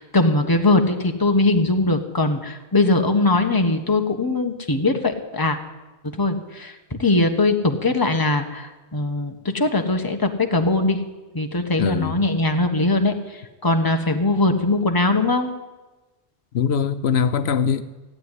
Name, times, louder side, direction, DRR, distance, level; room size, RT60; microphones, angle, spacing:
voice 1, 0.0-5.6 6.1-6.7 7.0-11.0 11.3-13.1 13.6-15.5, left 2 dB, 20° left, 1.2 m, -20 dB
voice 2, 11.8-12.2 16.5-17.8, left 7 dB, 75° left, 0.9 m, -22 dB
15.5 x 8.7 x 9.8 m
omnidirectional pair, 1.1 m